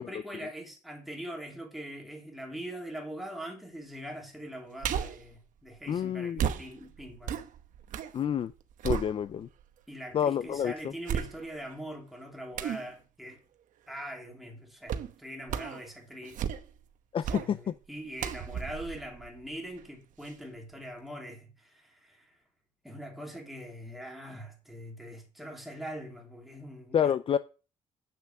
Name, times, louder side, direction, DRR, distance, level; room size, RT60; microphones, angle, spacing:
voice 1, 0.0-7.4 9.9-13.4 13.9-16.4 17.3-22.3 22.8-27.1, equal, ahead, 3.0 m, -42 dB
sound 1, 4.8-5.3 6.4-8.2 8.5-9.6 10.1-10.2 11.1-11.7 12.6-12.9 14.9-15.1 15.5-15.8 16.2-16.8 17.2-17.5 18.2-19.9 20.3-20.4, right 8 dB, 70° right, 1.0 m, -34 dB
voice 2, 5.9-6.5 8.1-8.5 8.8-9.5 10.1-10.9 17.1-17.7 26.9-27.4, left 8 dB, 40° left, 0.5 m, -28 dB
8.6 x 6.8 x 6.3 m
cardioid pair, 120°, 14 cm